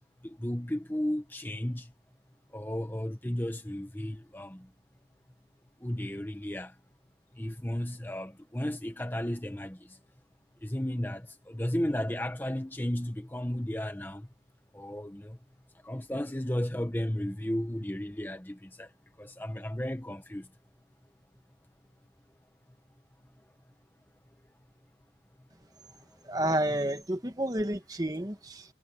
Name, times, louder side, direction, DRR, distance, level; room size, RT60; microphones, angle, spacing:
voice 1, 0.2-1.9 2.5-4.7 5.8-6.7 7.4-10.0 10.6-14.3 14.7-15.4 15.8-18.9 19.2-20.5, left 1 dB, 10° left, 0.9 m, -34 dB
voice 2, 26.3-28.6, right 1 dB, 20° right, 1.5 m, -30 dB
head